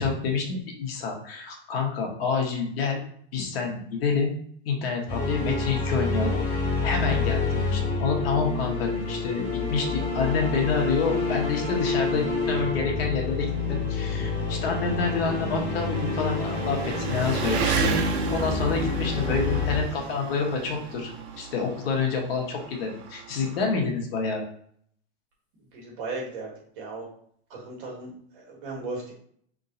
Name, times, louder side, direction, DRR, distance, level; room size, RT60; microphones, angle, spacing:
voice 1, 0.0-3.0 3.3-4.3 4.6-18.0 18.3-21.1 21.4-24.4, left 5 dB, 60° left, 1 dB, 1.3 m, -28 dB
sound 1, 5.1-19.8, left 4 dB, 10° left, 1.4 m, -28 dB
Engine, 9.1-9.2 9.6-9.7 10.6-10.7 11.0-23.7, right 5 dB, 75° right, 1.1 m, -34 dB
sound 2, 16.6-21.5, right 6 dB, 30° right, 0.7 m, -44 dB
voice 2, 25.7-27.0 27.5-28.1 28.5-29.1, right 3 dB, 50° right, -2 dB, 1.8 m, -36 dB
5.3 x 3.6 x 2.6 m, 0.62 s
supercardioid pair, 165°, 33 cm